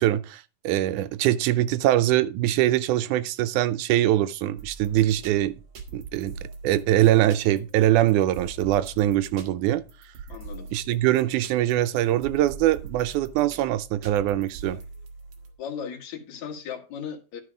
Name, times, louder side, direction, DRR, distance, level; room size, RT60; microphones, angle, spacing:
voice 1, 0.0-5.6 5.9-9.8 10.7-14.8, right 13 dB, 85° right, 2.1 m, -23 dB
sound 1, 4.6-15.5, right 4 dB, 55° right, 2.2 m, -43 dB
voice 2, 10.3-10.7 15.6-17.4, left 7 dB, 70° left, 3.0 m, -36 dB
11.5 x 5.5 x 4.9 m
omnidirectional pair, 3.4 m